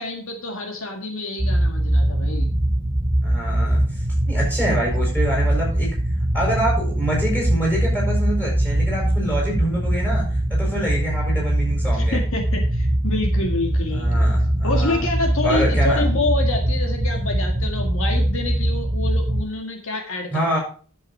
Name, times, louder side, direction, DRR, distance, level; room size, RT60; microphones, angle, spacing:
voice 1, 0.0-2.5 11.9-14.2 14.6-20.6, left 2 dB, 65° left, 3 dB, 1.8 m, -27 dB
sound 1, 1.4-19.4, right 1 dB, 20° right, 1.3 m, -22 dB
voice 2, 3.2-3.8 4.2-5.9 6.3-10.2 10.5-12.2 13.9-15.1 15.4-16.0 20.3-20.6, right 1 dB, 10° left, -3 dB, 6.5 m, -25 dB
11.0 x 7.3 x 4.5 m, 0.40 s
head